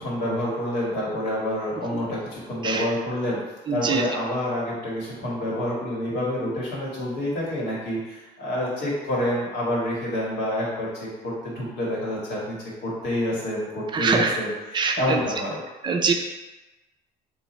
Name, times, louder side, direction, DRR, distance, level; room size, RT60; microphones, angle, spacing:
voice 1, 0.0-3.4 3.7-12.6 12.8-15.6, left 1 dB, 80° left, -5 dB, 1.4 m, -28 dB
voice 2, 3.7-4.0 13.9-14.3 14.7-15.2 15.8-16.1, right 5 dB, 25° right, 3 dB, 0.4 m, -23 dB
2.9 x 2.5 x 4.2 m, 1.1 s
cardioid pair, 110°, 17 cm